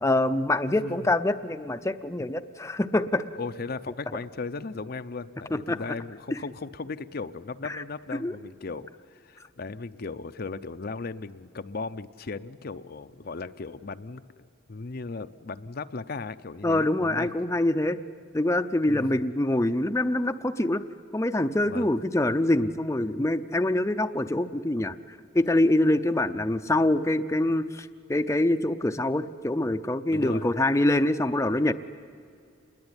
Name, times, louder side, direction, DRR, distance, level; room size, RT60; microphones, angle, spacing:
voice 1, 0.0-3.2 5.5-5.8 6.3-6.4 7.6-7.8 8.1-8.4 16.6-18.0 18.3-20.8 21.1-31.7, left 1 dB, 15° left, 8 dB, 0.6 m, -25 dB
voice 2, 0.7-1.1 3.4-17.3 18.9-19.2 21.7-21.9 30.1-30.5, left 4 dB, 50° left, 10 dB, 0.6 m, -37 dB
27.5 x 21.5 x 9.7 m, 2.3 s
head